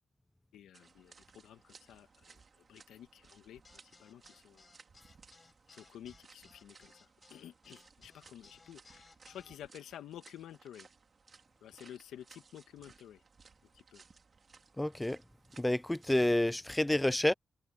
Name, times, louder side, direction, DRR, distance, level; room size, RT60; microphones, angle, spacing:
voice 1, 0.5-2.4 2.7-4.7 5.7-10.9 11.6-13.2 13.7-14.0, left 10 dB, 90° left, 1.6 m, -52 dB
sound 1, 0.7-16.6, right 4 dB, 45° right, 3.5 m, -61 dB
sound 2, 3.6-9.6, left 3 dB, 30° left, 6.7 m, -62 dB
voice 2, 14.8-15.2 15.6-17.3, left 1 dB, 10° left, 0.3 m, -29 dB
cardioid pair, 75°, 0 cm